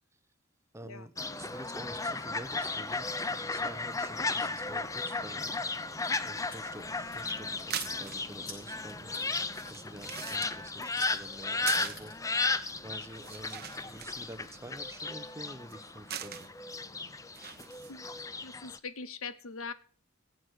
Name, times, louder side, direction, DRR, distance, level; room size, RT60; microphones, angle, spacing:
voice 1, 0.7-5.5 6.2-9.1 9.7-12.6 12.8-16.5, right 1 dB, 15° right, 11 dB, 0.9 m, -48 dB
Fowl, 1.2-18.8, left 3 dB, 15° left, 0.6 m, -35 dB
Chewing mastication, 6.3-15.1, left 2 dB, 45° left, 6.8 m, -53 dB
sound 1, 7.5-18.2, right 10 dB, 45° right, 0.9 m, -45 dB
voice 2, 18.4-19.7, left 4 dB, 75° left, 14 dB, 0.9 m, -41 dB
16.5 x 8.2 x 6.5 m, 0.43 s
head